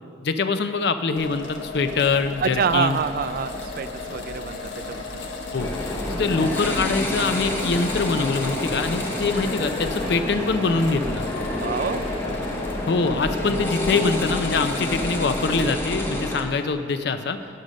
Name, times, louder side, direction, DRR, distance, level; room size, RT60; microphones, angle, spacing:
voice 1, 0.2-3.0 5.5-5.7 6.1-11.2 12.9-17.4, left 4 dB, 60° left, 9 dB, 0.5 m, -24 dB
sound 1, 1.2-15.8, left 3 dB, 80° left, 1.0 m, -34 dB
voice 2, 2.4-5.2 11.6-12.0, right 6 dB, 50° right, 11 dB, 0.3 m, -26 dB
sound 2, 5.6-16.4, left 1 dB, 10° left, 0.8 m, -28 dB
9.7 x 6.5 x 6.4 m, 2.5 s
head